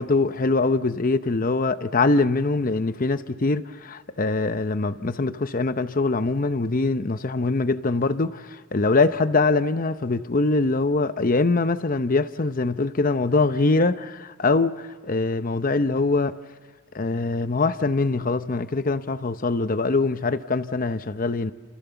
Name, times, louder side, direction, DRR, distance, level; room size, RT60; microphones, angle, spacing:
voice 1, 0.0-16.3 16.9-21.5, left 3 dB, 45° left, 0.7 m, -23 dB
29.5 x 29.0 x 7.0 m
head